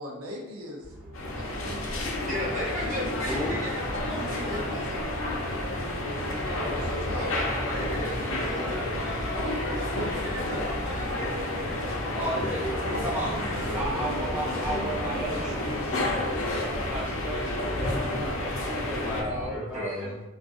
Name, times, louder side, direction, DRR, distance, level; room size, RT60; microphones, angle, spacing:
voice 1, 0.0-0.8 1.4-2.2 4.3-5.5 6.6-7.3 13.2-15.7, left 1 dB, 85° right, -1 dB, 0.6 m, -39 dB
sound 1, 0.8-19.5, right 1 dB, 55° right, 1.0 m, -42 dB
sound 2, 1.1-19.2, left 1 dB, 65° left, 0.6 m, -30 dB
voice 2, 2.2-4.7 7.0-12.2 18.9-20.1, left 1 dB, 35° right, -7 dB, 1.1 m, -36 dB
voice 3, 3.3-3.6 6.1-6.4 12.1-20.2, equal, 5° right, -7 dB, 0.4 m, -35 dB
3.5 x 2.4 x 2.5 m, 1.0 s
head